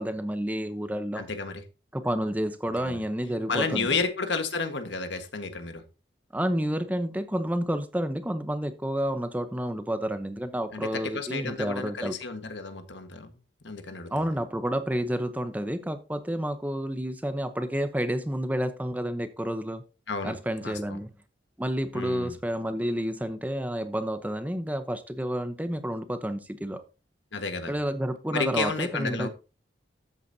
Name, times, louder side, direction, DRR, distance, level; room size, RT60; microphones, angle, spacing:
voice 1, 0.0-1.2 1.9-3.9 6.3-12.2 14.1-19.8 20.2-21.1 21.6-26.8 27.7-29.3, equal, 10° right, 0.8 m, -30 dB
voice 2, 1.1-1.6 2.8-3.0 3.5-5.8 10.7-13.4 13.6-14.3 20.1-20.3 20.6-21.0 21.9-22.4 27.3-27.7 28.3-29.3, left 4 dB, 85° left, 1.5 m, -31 dB
13.0 x 8.2 x 2.8 m
head